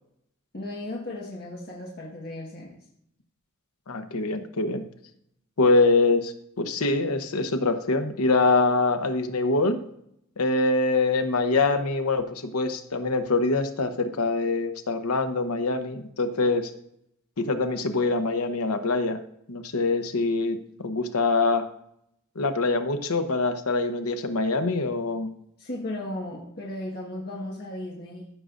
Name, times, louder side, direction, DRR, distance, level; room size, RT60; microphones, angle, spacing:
voice 1, 0.5-2.8 25.6-28.3, left 1 dB, 45° left, -3 dB, 1.5 m, -35 dB
voice 2, 3.9-4.8 5.6-9.8 10.4-16.7 17.4-19.2 19.5-21.7 22.4-25.3, left 3 dB, 80° left, 8 dB, 0.9 m, -24 dB
14.5 x 6.5 x 2.5 m, 0.74 s
head